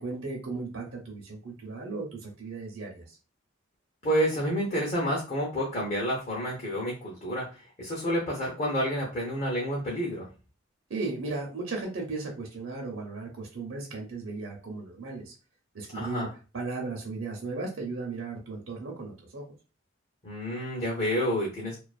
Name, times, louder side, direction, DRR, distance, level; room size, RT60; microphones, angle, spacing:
voice 1, 0.0-3.2 10.9-15.3 15.7-16.3 16.5-19.4, right 3 dB, 80° right, 0 dB, 0.7 m, -36 dB
voice 2, 4.0-10.3 15.9-16.3 20.2-21.8, equal, 35° left, -3 dB, 0.6 m, -29 dB
2.4 x 2.3 x 2.3 m, 0.33 s
head